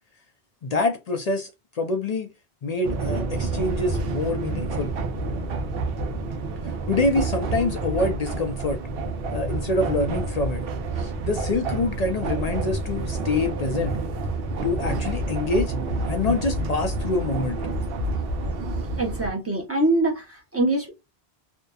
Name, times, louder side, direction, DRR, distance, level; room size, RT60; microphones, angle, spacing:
voice 1, 0.6-2.3 2.6-4.9 6.9-8.8 9.3-10.6 11.0-14.0 14.6-15.7 16.1-17.6, left 2 dB, 55° left, 0.4 m, -26 dB
sound 1, 2.8-19.3, right 2 dB, 70° right, 0.8 m, -28 dB
voice 2, 19.0-20.9, right 2 dB, 15° right, 0.7 m, -24 dB
2.6 x 2.2 x 2.3 m
omnidirectional pair, 1.0 m